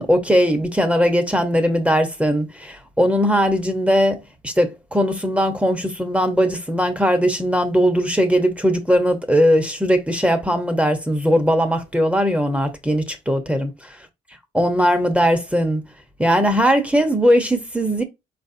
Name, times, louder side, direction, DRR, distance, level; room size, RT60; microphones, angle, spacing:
voice 1, 0.0-14.0 14.5-15.8 16.2-18.0, equal, 5° right, 1.0 m, -19 dB
4.5 x 4.1 x 2.7 m
cardioid pair, 95°, 21 cm